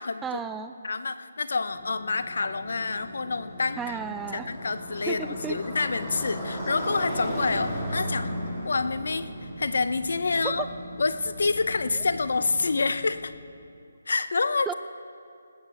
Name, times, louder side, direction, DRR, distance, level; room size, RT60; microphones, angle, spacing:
voice 1, 0.2-0.7 3.8-4.5 5.1-5.6 10.4-10.6 14.7-14.8, right 7 dB, 10° right, 10 dB, 0.3 m, -33 dB
voice 2, 0.8-4.0 4.3-8.3 8.6-10.7 11.0-13.3 14.1-14.7, left 4 dB, 60° left, 12 dB, 0.6 m, -27 dB
Motorcycle, 1.7-13.1, equal, 5° left, 2.8 m, -36 dB
19.0 x 8.8 x 4.8 m, 2.4 s
figure-of-eight pair, 150°, 0 cm